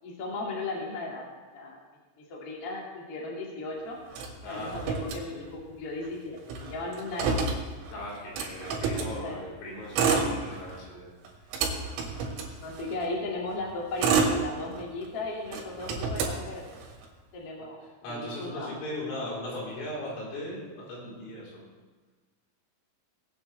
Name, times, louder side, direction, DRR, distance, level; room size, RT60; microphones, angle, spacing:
voice 1, 0.0-1.3 1.5-1.8 2.3-4.0 4.5-7.5 8.7-9.4 12.6-16.7 17.3-17.8 18.0-18.8, left 2 dB, 40° left, -3 dB, 2.2 m, -36 dB
Motor vehicle (road), 4.1-5.7 6.0-6.1 6.4-9.1 9.8-10.8 11.2-13.1 13.6-15.1 15.5-17.1, right 5 dB, 80° right, 4.5 m, -29 dB
voice 2, 4.4-4.8 7.9-11.1 11.5-11.6 17.6-17.7 18.0-21.7, left 1 dB, 80° left, -6 dB, 6.8 m, -38 dB
21.0 x 8.7 x 3.4 m, 1.3 s
omnidirectional pair, 6.0 m